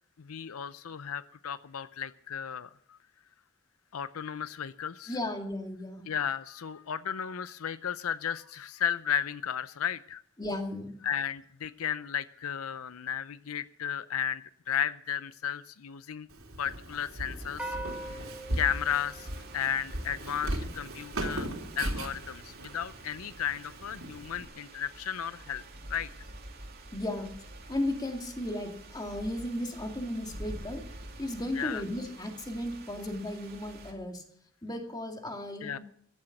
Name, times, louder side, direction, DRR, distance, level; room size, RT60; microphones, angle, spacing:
voice 1, 0.2-3.0 3.9-5.2 6.1-10.2 11.0-16.3 16.6-17.8 18.1-18.3 18.5-21.5 21.8-25.6 25.9-26.1 31.5-31.8 35.6-35.8, left 8 dB, 85° left, 15 dB, 0.6 m, -34 dB
voice 2, 5.1-6.1 10.4-11.0 26.9-27.3 27.7-30.8 31.2-34.2 34.6-35.8, left 1 dB, 20° left, 3 dB, 2.3 m, -35 dB
Walk footsteps, 16.3-24.4, right 1 dB, 75° right, 3.3 m, -38 dB
sound 1, 17.6-20.1, right 1 dB, 5° right, 2.8 m, -41 dB
sound 2, 17.9-33.9, right 2 dB, 50° right, 2.9 m, -48 dB
15.5 x 12.0 x 5.9 m, 0.65 s
head